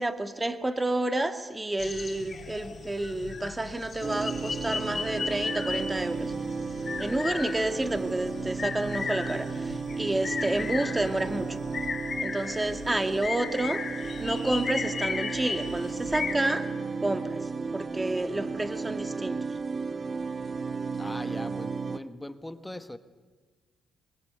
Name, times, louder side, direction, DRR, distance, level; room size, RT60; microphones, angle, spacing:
voice 1, 0.0-6.3 7.0-11.6 12.2-13.8 14.2-16.7 17.0-17.4 17.7-19.4, right 2 dB, 15° right, 2.0 m, -30 dB
sound 1, 1.8-16.4, left 5 dB, 45° left, 3.4 m, -36 dB
sound 2, 4.0-22.0, right 4 dB, 35° right, 0.8 m, -34 dB
voice 2, 21.0-23.0, left 1 dB, 10° left, 1.3 m, -40 dB
25.0 x 21.0 x 9.5 m
cardioid pair, 90°, 0 cm